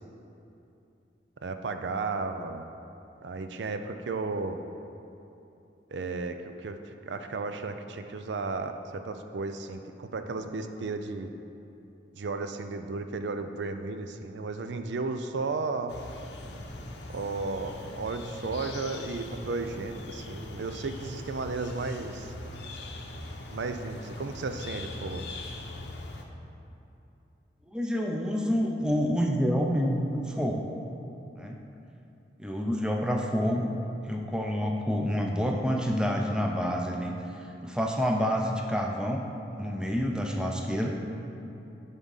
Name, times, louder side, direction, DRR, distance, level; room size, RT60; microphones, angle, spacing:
voice 1, 1.4-2.6 3.2-4.6 5.9-6.4 6.6-11.3 12.1-15.9 17.1-22.3 23.5-25.3, right 3 dB, 80° right, 8 dB, 0.4 m, -34 dB
sound 1, 15.9-26.3, left 2 dB, 80° left, 0.8 m, -41 dB
voice 2, 27.7-30.6 31.4-31.6 32.4-33.7 34.0-37.1 37.6-39.2 39.6-41.0, equal, 5° right, 1 dB, 0.5 m, -28 dB
11.0 x 3.7 x 5.5 m, 2.8 s
head